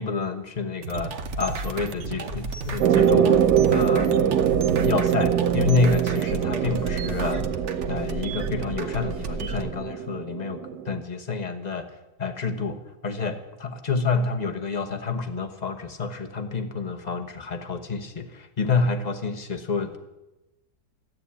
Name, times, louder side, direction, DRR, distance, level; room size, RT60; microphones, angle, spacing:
voice 1, 0.0-7.5 7.9-11.9 12.2-20.0, left 4 dB, 30° left, 6 dB, 1.1 m, -28 dB
sound 1, 0.8-9.7, right 4 dB, 50° right, 1.2 m, -33 dB
sound 2, 2.8-11.0, right 9 dB, 80° right, 1.3 m, -23 dB
13.5 x 8.9 x 9.9 m, 1.0 s
omnidirectional pair, 1.7 m